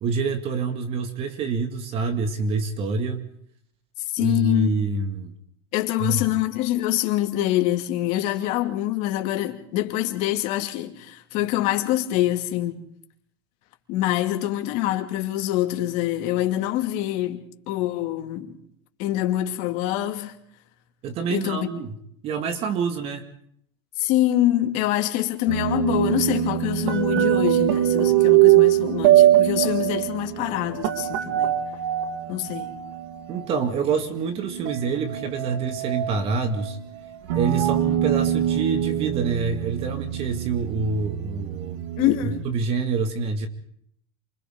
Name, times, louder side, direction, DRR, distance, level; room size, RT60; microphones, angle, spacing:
voice 1, 0.0-3.3 4.2-5.3 6.0-6.2 21.0-21.9 22.2-23.3 33.3-36.8 37.3-41.8 42.2-43.5, right 4 dB, 40° right, 2.3 m, -26 dB
voice 2, 4.1-4.7 5.7-12.8 13.9-17.4 17.7-18.5 19.0-20.3 21.3-21.7 24.0-31.5 32.3-32.7 42.0-42.4, left 14 dB, 55° left, 2.6 m, -25 dB
sound 1, 25.5-33.7 34.3-42.4, right 13 dB, 70° right, 1.9 m, -22 dB
28.0 x 25.5 x 3.9 m
supercardioid pair, 120°, 14 cm